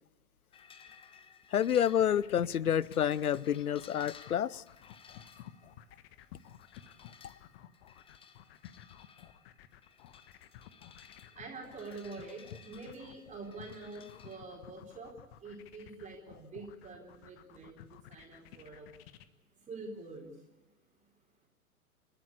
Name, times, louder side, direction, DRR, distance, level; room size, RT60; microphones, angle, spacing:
sound 1, 0.5-14.4, left 7 dB, 10° left, 1.0 m, -58 dB
voice 1, 1.5-4.6, left 9 dB, 75° left, 0.7 m, -29 dB
sound 2, 1.8-19.3, left 12 dB, 40° left, 1.3 m, -53 dB
voice 2, 11.3-19.0 19.6-20.4, right 3 dB, 15° right, 4.1 m, -46 dB
29.5 x 12.0 x 8.5 m
figure-of-eight pair, 105°, 44 cm